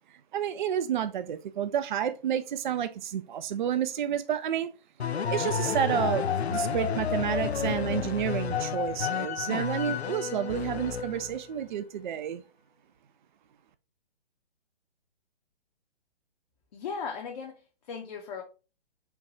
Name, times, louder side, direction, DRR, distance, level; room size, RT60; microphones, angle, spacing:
voice 1, 0.3-4.7 5.3-12.4, right 9 dB, 50° right, 0.4 m, -30 dB
sound 1, 5.0-11.5, left 7 dB, 85° left, 0.5 m, -30 dB
voice 2, 16.7-18.4, left 6 dB, 40° left, 0.7 m, -37 dB
4.5 x 2.3 x 3.9 m
figure-of-eight pair, 130°, 32 cm